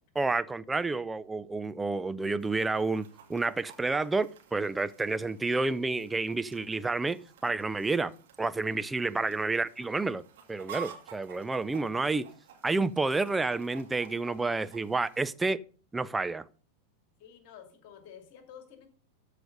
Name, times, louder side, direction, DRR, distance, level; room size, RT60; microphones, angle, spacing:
voice 1, 0.2-10.2 10.5-12.3 12.6-15.6 15.9-16.4, right 3 dB, 10° right, 0.5 m, -30 dB
Chicken rooster, 2.4-15.3, right 8 dB, 55° right, 2.4 m, -51 dB
voice 2, 17.2-18.9, left 8 dB, 45° left, 2.4 m, -50 dB
14.0 x 5.0 x 5.2 m
figure-of-eight pair, 90°, 0 cm